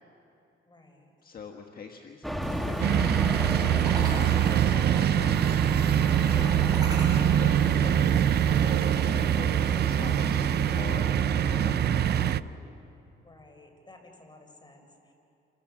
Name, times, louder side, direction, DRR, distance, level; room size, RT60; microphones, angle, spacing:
voice 1, 0.7-1.1 13.2-15.1, left 2 dB, 20° left, 4 dB, 4.5 m, -54 dB
voice 2, 1.2-3.1 3.6-5.6 6.0-8.2 8.6-12.0, left 5 dB, 50° left, 2 dB, 1.5 m, -45 dB
sound 1, 2.2-12.3, equal, ahead, 2.0 m, -34 dB
sound 2, 2.4-10.8, right 2 dB, 20° right, 6.7 m, -44 dB
sound 3, 2.8-12.4, right 11 dB, 55° right, 0.5 m, -24 dB
28.0 x 22.0 x 7.2 m, 2.7 s
cardioid pair, 90°, 20 cm